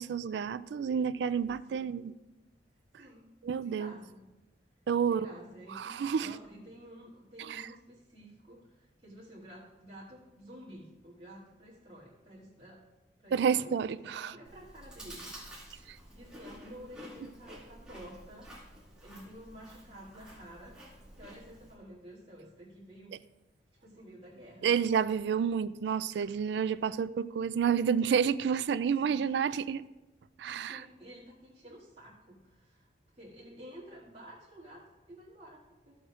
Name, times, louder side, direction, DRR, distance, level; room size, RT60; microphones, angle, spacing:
voice 1, 0.0-2.1 3.4-3.9 4.9-5.3 5.8-6.3 7.4-7.6 13.3-14.3 15.9-16.0 24.6-29.8 30.4-30.8, right 7 dB, 70° right, 0.3 m, -30 dB
voice 2, 3.6-4.2 5.1-12.8 13.2-13.7 14.1-15.3 16.1-18.5 19.0-20.7 21.1-23.1 23.8-24.8 28.9-29.3 30.4-36.0, equal, 35° right, 2.7 m, -51 dB
Chewing mastication, 14.4-21.7, equal, 5° right, 2.3 m, -50 dB
14.5 x 7.9 x 2.5 m
head